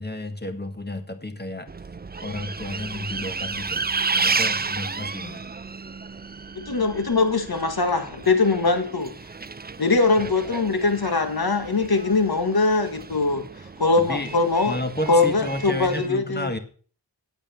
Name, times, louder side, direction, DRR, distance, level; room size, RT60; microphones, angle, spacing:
voice 1, 0.0-1.7 2.2-5.5 14.1-14.4 14.7-16.6, left 1 dB, 25° left, 7 dB, 2.0 m, -32 dB
Bus, 1.7-16.1, right 4 dB, 25° right, 0.5 m, -32 dB
voice 2, 6.6-9.1 9.8-13.5 13.8-14.8 15.1-16.5, left 3 dB, 60° left, 8 dB, 1.9 m, -22 dB
8.8 x 8.4 x 7.1 m, 0.42 s
cardioid pair, 45°, 41 cm